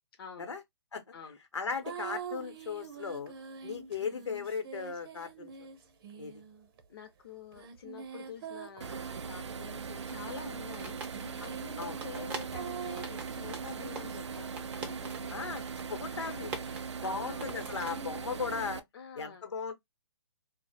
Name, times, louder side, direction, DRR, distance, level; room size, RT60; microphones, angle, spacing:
voice 1, 0.2-0.5 1.1-1.4 3.9-4.3 6.9-15.5 16.1-17.5 18.9-19.4, left 6 dB, 55° left, 0.5 m, -48 dB
voice 2, 1.5-3.3 3.6-5.5 6.2-6.4 11.8-12.0 15.3-15.6 15.9-16.6 17.0-18.8 19.2-19.7, left 5 dB, 85° left, 0.7 m, -37 dB
sound 1, 1.8-6.8 7.5-10.0 10.9-15.5 17.4-18.6, right 6 dB, 55° right, 0.7 m, -45 dB
sound 2, 8.8-18.8, right 6 dB, 85° right, 0.4 m, -40 dB
sound 3, 9.8-17.9, right 4 dB, 10° right, 0.3 m, -46 dB
2.0 x 2.0 x 3.1 m
hypercardioid pair, 145°, 14 cm